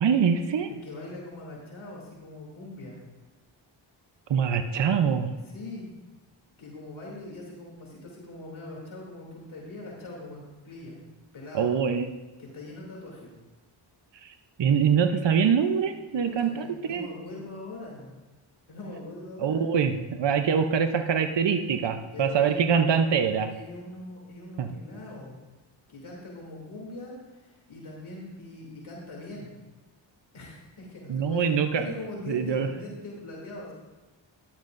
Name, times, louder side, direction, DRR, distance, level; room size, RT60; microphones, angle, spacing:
voice 1, 0.0-0.7 4.3-5.3 11.5-12.1 14.2-17.1 19.4-23.5 24.6-24.7 31.1-31.9 32.3-32.7, right 7 dB, 60° right, 7 dB, 0.8 m, -24 dB
voice 2, 0.7-3.0 5.4-5.9 6.6-11.0 11.3-11.7 12.4-13.3 16.1-18.2 18.7-19.6 22.1-22.5 23.5-25.4 25.9-29.5 30.3-31.5 31.8-33.7, left 2 dB, 75° left, -3 dB, 3.0 m, -42 dB
13.0 x 11.5 x 2.6 m, 1.2 s
cardioid pair, 60°, 48 cm